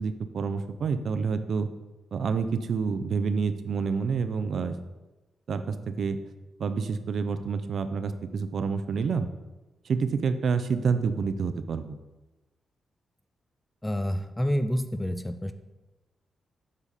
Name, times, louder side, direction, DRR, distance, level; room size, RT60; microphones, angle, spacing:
voice 1, 0.0-1.7 2.1-4.8 5.5-6.2 6.6-9.3 9.9-12.0, right 5 dB, 60° right, 10 dB, 0.5 m, -28 dB
voice 2, 13.8-15.5, equal, 10° left, 9 dB, 0.4 m, -28 dB
7.3 x 5.0 x 4.1 m, 1.1 s
wide cardioid pair, 130°, 0 cm